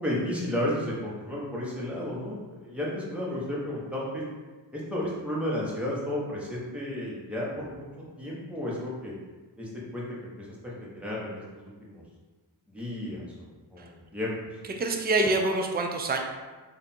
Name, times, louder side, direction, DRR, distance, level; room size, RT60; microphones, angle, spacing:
voice 1, 0.0-4.2 4.7-7.9 8.2-9.1 9.6-12.0 12.7-14.3, left 1 dB, 5° right, -6 dB, 1.3 m, -33 dB
voice 2, 14.8-16.2, right 2 dB, 20° right, 3 dB, 0.5 m, -26 dB
3.4 x 2.7 x 4.3 m, 1.3 s
cardioid pair, 50°, 47 cm